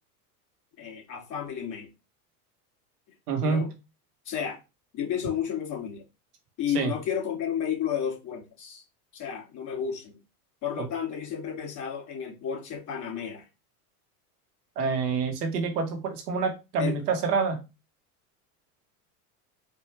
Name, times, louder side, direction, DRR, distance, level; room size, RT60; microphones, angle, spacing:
voice 1, 0.8-1.9 3.4-3.7 4.3-4.6 4.9-6.0 6.6-8.8 9.1-10.1 10.6-13.5 16.8-17.0, left 8 dB, 40° left, 2.4 m, -32 dB
voice 2, 3.3-3.6 6.7-6.9 10.8-10.9 14.8-17.6, right 5 dB, 90° right, 1.3 m, -27 dB
4.5 x 2.6 x 3.3 m
hypercardioid pair, 100°, 45 cm